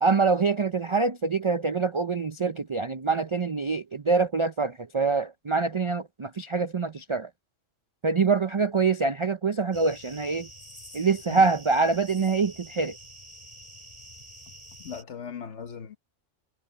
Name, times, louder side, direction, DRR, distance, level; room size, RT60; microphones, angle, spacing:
voice 1, 0.0-7.3 8.0-10.5 10.9-13.0, right 4 dB, 45° right, 0.4 m, -25 dB
sound 1, 9.7-15.0, right 1 dB, 30° left, 3.8 m, -47 dB
voice 2, 11.0-11.4 14.8-16.0, left 7 dB, 65° left, 1.4 m, -39 dB
omnidirectional pair, 1.3 m